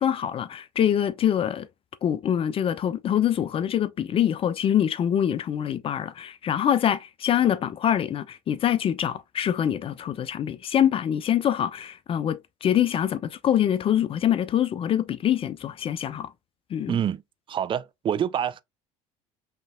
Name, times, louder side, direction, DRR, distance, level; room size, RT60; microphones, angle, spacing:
voice 1, 0.0-1.7 2.0-16.3 16.7-17.0, left 10 dB, 35° left, 0.4 m, -24 dB
voice 2, 16.9-17.2 17.5-18.6, right 9 dB, 30° right, 0.4 m, -26 dB
5.5 x 2.8 x 2.3 m
hypercardioid pair, 65°, 17 cm